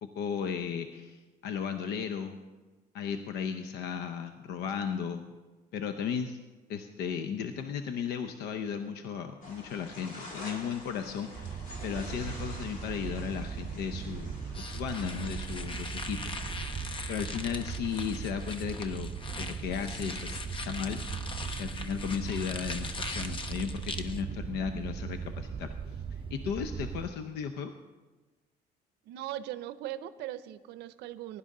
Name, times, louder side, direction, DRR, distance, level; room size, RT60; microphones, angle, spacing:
voice 1, 0.0-2.4 2.9-5.3 5.7-6.4 6.7-16.2 17.1-19.1 19.4-21.0 21.6-27.7, left 7 dB, 75° left, 8 dB, 0.7 m, -35 dB
sound 1, 9.4-18.5, left 1 dB, 50° left, 2.9 m, -48 dB
sound 2, 11.3-27.1, right 6 dB, 30° right, 0.7 m, -39 dB
sound 3, 14.5-24.2, left 3 dB, 30° left, 0.9 m, -41 dB
voice 2, 29.1-31.4, right 13 dB, 85° right, 14 dB, 0.6 m, -39 dB
16.0 x 11.0 x 3.8 m, 1.3 s
cardioid pair, 110°, 17 cm